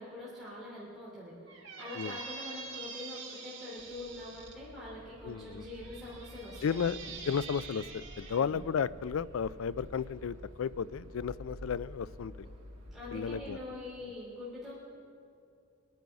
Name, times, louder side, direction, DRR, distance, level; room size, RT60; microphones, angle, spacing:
voice 1, 0.0-7.0 8.3-8.6 12.9-14.7, left 2 dB, ahead, -10 dB, 3.0 m, -44 dB
Squeak, 1.5-4.5 5.4-8.4, right 5 dB, 60° right, 2.9 m, -46 dB
sound 1, 3.8-13.7, equal, 75° right, 2.2 m, -50 dB
voice 2, 5.2-5.6 6.6-7.0 7.3-12.3 13.1-13.6, left 7 dB, 80° left, 17 dB, 0.4 m, -33 dB
24.0 x 9.2 x 4.7 m, 2.5 s
head